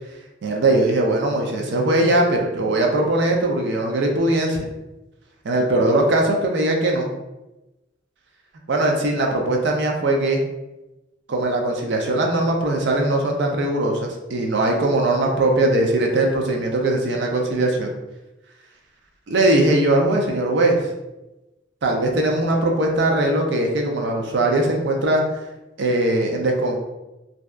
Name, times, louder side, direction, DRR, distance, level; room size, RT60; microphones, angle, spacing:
voice 1, 0.4-4.6 5.4-7.1 8.7-10.4 11.3-17.9 19.3-20.8 21.8-25.2 25.8-26.8, right 1 dB, 60° right, 1 dB, 0.4 m, -20 dB
2.6 x 2.2 x 2.3 m, 1.0 s
head